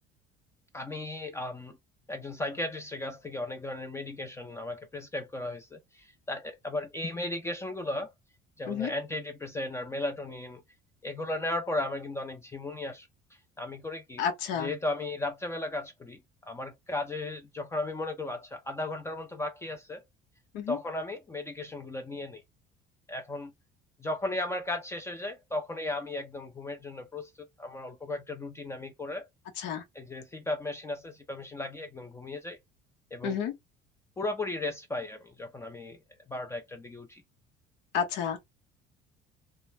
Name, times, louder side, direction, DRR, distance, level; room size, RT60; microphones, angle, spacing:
voice 1, 0.7-1.8 2.1-8.1 8.6-10.6 11.0-13.1 13.6-14.3 14.6-16.2 16.5-20.0 20.7-22.4 23.1-23.5 24.0-29.3 29.9-32.6 33.1-33.4 34.2-36.0 36.3-37.2, left 2 dB, 15° left, 0.4 m, -35 dB
voice 2, 14.2-14.7 20.5-20.8 29.6-29.8 33.2-33.5 37.9-38.4, left 7 dB, 75° left, 0.9 m, -30 dB
2.2 x 2.0 x 3.1 m
cardioid pair, 120°, 18 cm